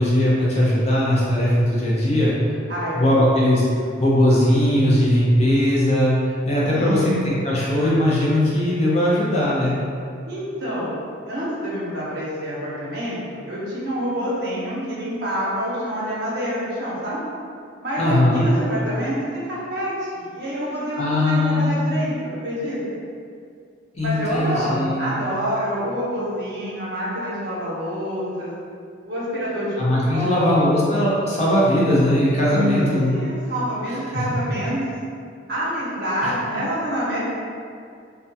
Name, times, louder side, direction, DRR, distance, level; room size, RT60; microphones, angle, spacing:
voice 1, 0.0-2.6 2.9-3.6 4.0-6.1 6.4-9.8 18.0-18.4 21.0-21.8 23.9-25.2 29.8-33.1 34.1-34.2 36.2-36.3, left 1 dB, 35° left, -7 dB, 0.5 m, -19 dB
voice 2, 2.7-3.3 6.7-7.3 10.3-10.9 11.3-17.2 17.8-23.0 24.0-28.5 29.1-29.8 30.1-30.7 32.4-34.8 35.5-37.2, equal, 55° right, -7 dB, 0.7 m, -27 dB
2.2 x 2.2 x 2.7 m, 2.3 s
head